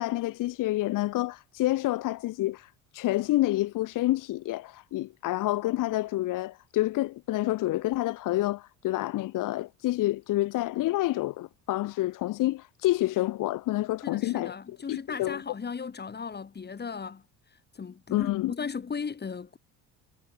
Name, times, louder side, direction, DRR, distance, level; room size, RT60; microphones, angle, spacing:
voice 1, 0.0-14.6 14.9-15.4 18.1-18.5, left 16 dB, 65° left, 1.3 m, -28 dB
voice 2, 14.0-17.2 17.7-19.6, left 5 dB, 30° left, 2.5 m, -36 dB
supercardioid pair, 90°, 34 cm